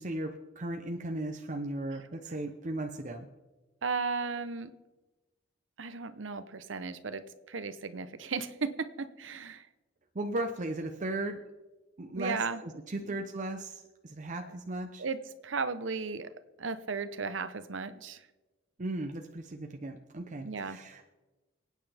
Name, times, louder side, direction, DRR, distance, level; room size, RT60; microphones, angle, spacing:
voice 1, 0.0-3.3 10.1-11.4 12.0-15.0 18.8-21.0, right 2 dB, 40° right, 4 dB, 0.8 m, -36 dB
voice 2, 3.8-4.7 5.8-9.6 12.1-12.6 13.1-13.2 14.4-14.6 15.0-16.3 16.6-18.2 20.4-20.8, right 4 dB, 80° right, 13 dB, 0.8 m, -35 dB
27.5 x 9.4 x 3.5 m, 1.2 s
head